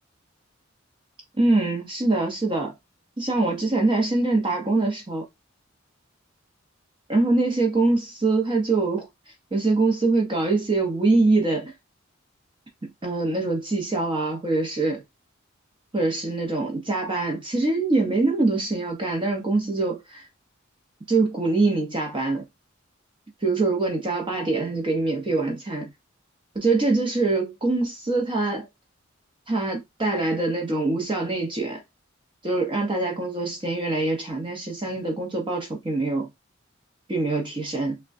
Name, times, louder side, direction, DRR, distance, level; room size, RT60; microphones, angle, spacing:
voice 1, 1.4-2.7 3.2-5.2 7.1-9.1 9.5-11.7 12.8-15.0 15.9-20.2 21.1-22.4 23.4-25.9 26.5-28.7 29.5-31.8 32.4-36.3 37.1-38.0, right 3 dB, 25° right, 0.7 m, -24 dB
3.5 x 2.2 x 2.5 m
head